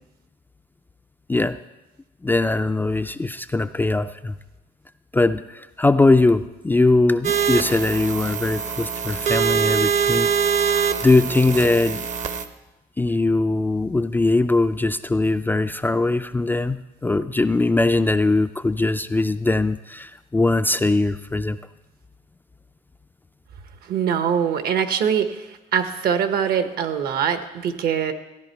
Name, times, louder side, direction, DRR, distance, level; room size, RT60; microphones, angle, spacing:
voice 1, 2.2-4.4 5.1-10.3 10.6-12.1 13.0-21.6, left 2 dB, 10° left, 9 dB, 0.3 m, -21 dB
sound 1, 7.2-12.4, right 7 dB, 45° right, 0.8 m, -23 dB
voice 2, 23.9-25.4 25.7-28.1, right 7 dB, 65° right, 9 dB, 1.0 m, -23 dB
15.0 x 10.5 x 4.5 m, 1.0 s
cardioid pair, 110°, 17 cm